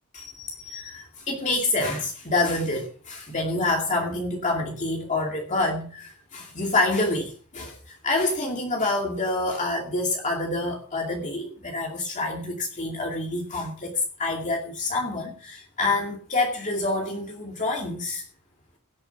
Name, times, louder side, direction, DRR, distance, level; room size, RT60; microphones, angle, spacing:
voice 1, 0.1-18.2, left 2 dB, 35° left, 1 dB, 2.5 m, -27 dB
17.5 x 8.9 x 5.8 m, 0.40 s
head